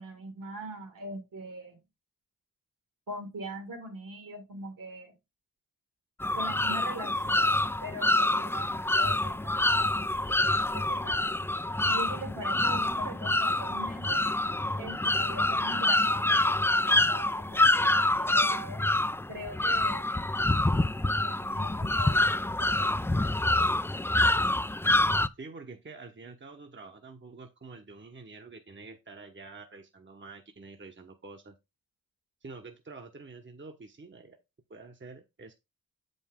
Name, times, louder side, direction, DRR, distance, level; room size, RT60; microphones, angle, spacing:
voice 1, 0.0-1.8 3.1-5.1 6.4-9.7 10.3-11.2 11.8-14.2 14.8-18.8 19.3-20.1 21.1-23.1, right 1 dB, 70° right, 2.7 m, -42 dB
sound 1, 6.2-25.3, left 2 dB, 5° left, 0.4 m, -26 dB
voice 2, 25.4-31.5 32.4-34.4 34.7-35.5, right 3 dB, 35° right, 1.1 m, -47 dB
7.1 x 5.4 x 3.6 m
cardioid pair, 45°, 34 cm